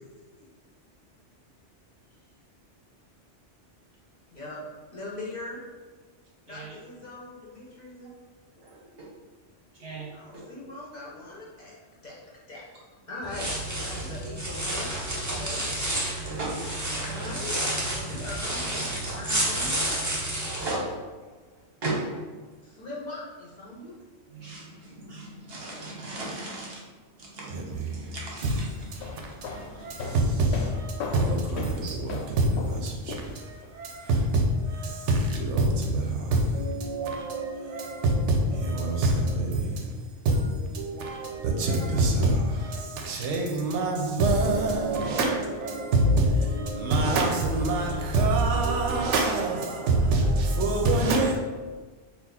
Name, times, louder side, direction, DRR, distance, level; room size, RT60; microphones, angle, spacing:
voice 1, 4.3-4.6 4.9-5.6 6.5-8.1 10.1-11.7 12.0-12.1 12.5-12.6 13.1-15.9 17.0-19.9 20.7-20.8 22.6-23.9, left 2 dB, 40° left, 0.9 m, -40 dB
voice 2, 8.6-9.1 9.8-10.1 16.2-16.7 17.1-17.3 20.4-20.8 21.8-22.3 24.3-26.8 27.2-28.9 29.5-29.9, right 2 dB, 55° right, 1.1 m, -37 dB
sound 1, 13.2-20.7, right 1 dB, 20° right, 0.6 m, -30 dB
voice 3, 27.4-28.1 28.4-28.7 28.9-51.4, right 2 dB, 75° right, 0.9 m, -26 dB
sound 2, 28.9-33.7, left 4 dB, 70° left, 0.8 m, -37 dB
4.2 x 2.3 x 4.1 m
omnidirectional pair, 1.2 m